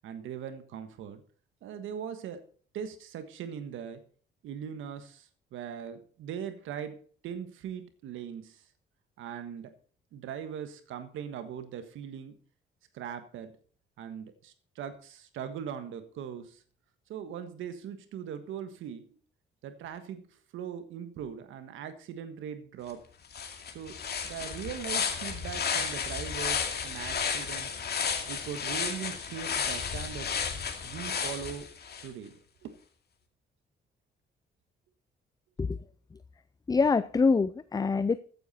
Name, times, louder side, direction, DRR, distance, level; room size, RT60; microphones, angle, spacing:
voice 1, 0.0-1.2 1.6-2.4 2.7-4.0 4.4-7.0 7.2-8.6 9.2-9.7 10.1-12.4 12.9-13.5 14.0-16.6 17.1-19.2 19.6-23.0 23.7-24.0 24.2-27.8 28.3-30.3 30.8-31.7 32.0-32.3 32.6-32.7, right 8 dB, 85° right, 10 dB, 1.5 m, -40 dB
sound 1, 22.9-23.0 23.3-32.1, left 6 dB, 55° left, 2.4 m, -33 dB
voice 2, 36.7-38.2, left 4 dB, 20° left, 15 dB, 0.5 m, -25 dB
14.0 x 9.5 x 4.3 m, 0.44 s
cardioid pair, 90°, 20 cm